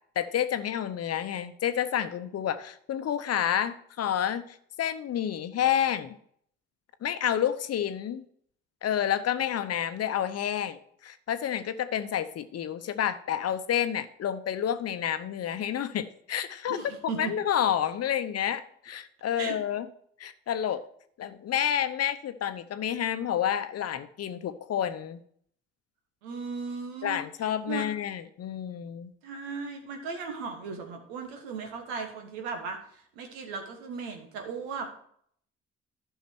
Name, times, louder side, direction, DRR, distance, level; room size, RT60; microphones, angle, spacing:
voice 1, 0.2-6.2 7.0-8.2 8.8-16.8 17.1-19.9 20.2-20.8 21.2-25.2 27.0-29.1, left 9 dB, 50° left, 11 dB, 0.9 m, -29 dB
voice 2, 16.7-17.3 19.4-19.6 26.2-27.2 27.6-27.9 29.2-34.9, right 5 dB, 80° right, 4 dB, 1.5 m, -37 dB
11.5 x 5.7 x 4.5 m, 0.64 s
hypercardioid pair, 50°, 31 cm